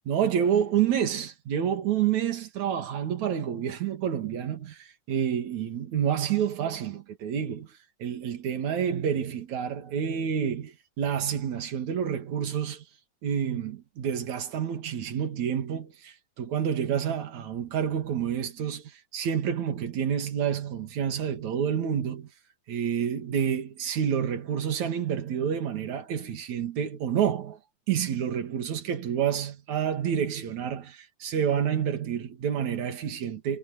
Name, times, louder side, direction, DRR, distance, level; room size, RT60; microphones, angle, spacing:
voice 1, 0.1-7.7 8.0-12.8 13.2-22.3 22.7-27.6 27.9-33.6, right 8 dB, 65° right, 3.6 m, -28 dB
omnidirectional pair, 3.6 m